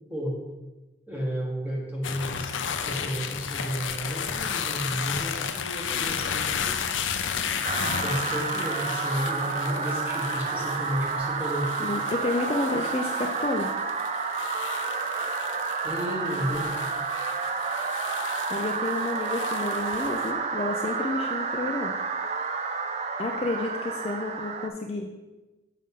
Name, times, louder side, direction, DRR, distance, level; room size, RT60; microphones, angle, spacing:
voice 1, 1.1-6.7 7.9-11.7 15.8-16.7, equal, 10° right, -3 dB, 1.3 m, -32 dB
sound 1, 2.0-20.3, left 7 dB, 85° left, 0.5 m, -34 dB
sound 2, 7.6-24.7, right 5 dB, 35° right, 0.4 m, -30 dB
voice 2, 11.8-13.7 18.5-21.9 23.2-25.1, left 2 dB, 30° left, 1 dB, 0.4 m, -30 dB
6.5 x 5.5 x 3.6 m, 1.1 s
head